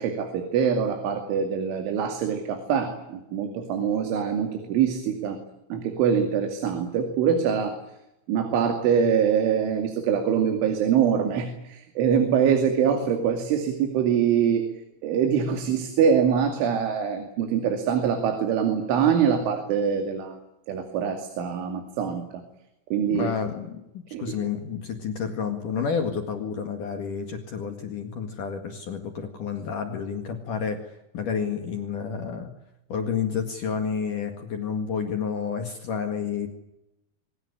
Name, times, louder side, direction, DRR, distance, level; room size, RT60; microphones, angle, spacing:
voice 1, 0.0-5.4 5.7-7.8 8.3-14.6 15.0-20.4 20.7-22.2 22.9-23.3 24.1-24.2, right 7 dB, 85° right, 5 dB, 4.9 m, -24 dB
voice 2, 23.1-32.5 32.9-36.5, left 6 dB, 55° left, 5 dB, 3.0 m, -30 dB
25.0 x 18.5 x 9.9 m, 0.88 s
omnidirectional pair, 5.4 m